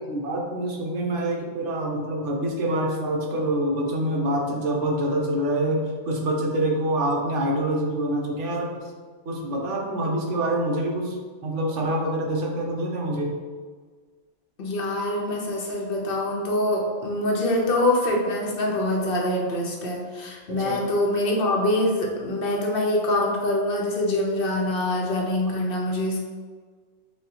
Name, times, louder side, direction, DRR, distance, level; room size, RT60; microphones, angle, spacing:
voice 1, 0.0-8.8 9.2-11.2 11.4-13.4 20.5-20.8, right 1 dB, 70° right, -1 dB, 1.1 m, -26 dB
voice 2, 14.6-26.2, left 1 dB, 55° left, -1 dB, 0.8 m, -24 dB
6.3 x 2.2 x 2.8 m, 1.5 s
omnidirectional pair, 1.3 m